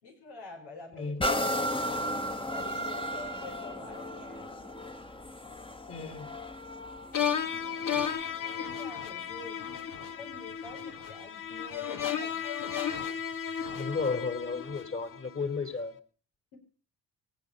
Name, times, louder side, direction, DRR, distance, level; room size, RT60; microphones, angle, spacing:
voice 1, 0.0-4.7 7.5-7.7 8.2-12.4 16.5-16.6, left 3 dB, 75° left, 5.2 m, -47 dB
voice 2, 0.9-1.3 5.9-6.3 13.7-15.9, left 4 dB, 35° left, 3.9 m, -33 dB
sound 1, 1.2-8.8 9.4-9.5, equal, 15° left, 1.6 m, -35 dB
sound 2, 7.1-15.3, left 8 dB, 50° left, 1.9 m, -34 dB
25.0 x 10.0 x 5.5 m
hypercardioid pair, 55°, 40 cm